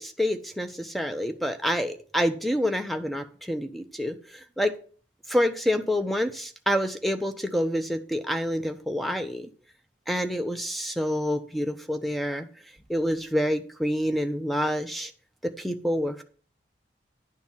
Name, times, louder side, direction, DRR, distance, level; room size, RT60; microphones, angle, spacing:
voice 1, 0.0-4.7 5.3-9.5 10.1-12.5 12.9-15.1 15.4-16.2, equal, ahead, 7 dB, 0.7 m, -27 dB
10.5 x 4.0 x 7.3 m, 0.42 s
head